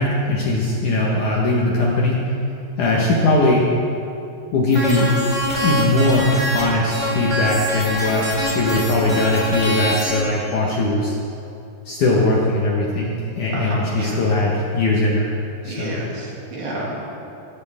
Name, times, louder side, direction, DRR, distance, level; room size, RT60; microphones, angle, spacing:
voice 1, 0.0-2.3 2.8-3.6 4.5-5.1 5.6-11.2 11.9-15.3 15.6-16.0, left 2 dB, 60° left, -3 dB, 2.4 m, -20 dB
sound 1, 4.7-6.6 6.9-10.2, left 1 dB, 10° left, 3.2 m, -24 dB
voice 2, 13.5-14.3 15.6-17.1, right 1 dB, 60° right, -4 dB, 4.6 m, -30 dB
23.0 x 14.5 x 3.7 m, 2.7 s
omnidirectional pair, 5.0 m